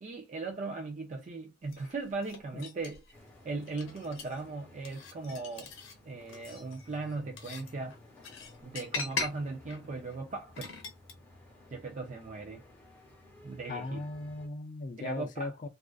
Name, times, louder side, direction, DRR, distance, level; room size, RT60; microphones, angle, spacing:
voice 1, 0.0-3.2 3.4-5.7 6.0-8.0 8.6-10.7 11.7-12.6 13.4-14.0 15.0-15.5, right 3 dB, 40° right, 0.4 m, -38 dB
sound 1, 1.7-3.1 3.6-4.4 4.8-5.9 6.3-11.1, left 4 dB, 80° left, 0.7 m, -41 dB
sound 2, 3.1-14.5, left 1 dB, 10° left, 0.7 m, -56 dB
voice 2, 13.7-15.7, left 2 dB, 40° left, 0.4 m, -38 dB
2.4 x 2.3 x 2.3 m
head